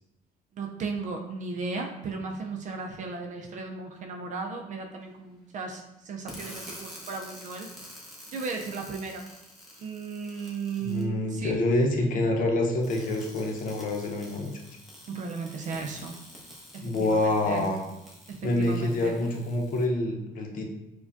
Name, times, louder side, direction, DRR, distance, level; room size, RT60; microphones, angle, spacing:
voice 1, 0.5-7.7 8.3-9.2 9.8-11.6 15.1-16.2 16.7-17.7 18.3-19.1, right 4 dB, 45° right, 2 dB, 0.4 m, -35 dB
sound 1, 6.3-11.0 12.7-19.8, equal, ahead, 0.9 m, -48 dB
voice 2, 10.8-14.5 16.8-17.8 18.4-20.7, left 2 dB, 50° left, 2 dB, 0.8 m, -26 dB
4.8 x 2.2 x 2.5 m, 0.91 s
cardioid pair, 110°, 17 cm